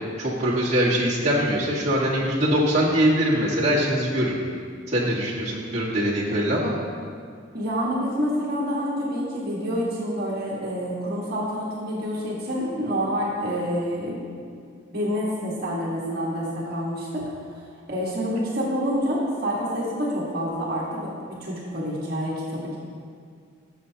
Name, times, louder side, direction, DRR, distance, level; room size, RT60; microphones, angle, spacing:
voice 1, 0.2-4.4 4.9-6.7, equal, 35° right, -7 dB, 1.6 m, -22 dB
voice 2, 7.5-14.2 14.9-17.2 17.9-21.1 21.4-22.8, equal, 50° right, -5 dB, 1.5 m, -27 dB
17.0 x 6.7 x 2.8 m, 2.2 s
head